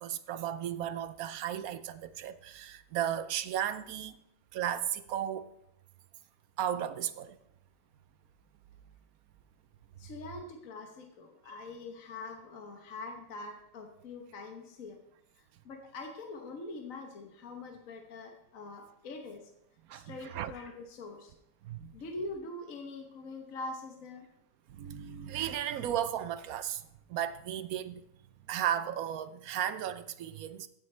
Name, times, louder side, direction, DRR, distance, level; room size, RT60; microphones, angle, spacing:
voice 1, 0.0-4.2 4.5-5.5 6.6-7.4 19.9-20.5 21.6-21.9 24.7-26.8 27.1-28.0 28.5-30.7, right 10 dB, 65° right, 1.0 m, -35 dB
voice 2, 10.0-15.0 15.4-19.5 19.9-21.3 21.9-24.3, left 2 dB, 55° left, 1.4 m, -44 dB
16.0 x 9.5 x 3.3 m
omnidirectional pair, 1.8 m